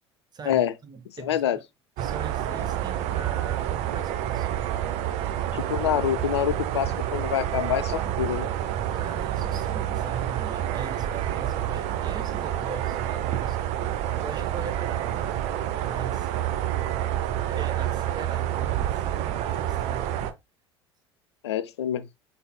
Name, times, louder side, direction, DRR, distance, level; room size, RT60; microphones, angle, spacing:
voice 1, 0.3-1.6 2.0-4.5 8.9-13.6 14.2-15.5 15.8-16.3 17.5-20.1, right 5 dB, 30° right, 1.1 m, -40 dB
voice 2, 1.2-1.6 5.5-8.5 21.4-22.1, left 10 dB, 80° left, 0.4 m, -26 dB
sound 1, 2.0-20.3, right 11 dB, 55° right, 0.7 m, -28 dB
5.6 x 4.0 x 2.2 m
hypercardioid pair, 75°, 14 cm